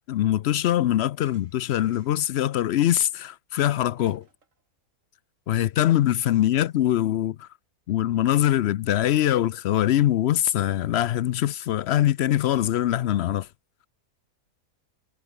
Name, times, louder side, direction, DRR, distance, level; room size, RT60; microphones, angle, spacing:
voice 1, 0.1-4.2 5.5-7.5 7.9-13.5, left 12 dB, 75° left, 0.6 m, -23 dB
sound 1, 1.2-2.5 3.9-4.7 5.0-5.1 6.1-6.9, right 4 dB, 55° right, 2.8 m, -62 dB
omnidirectional pair, 1.6 m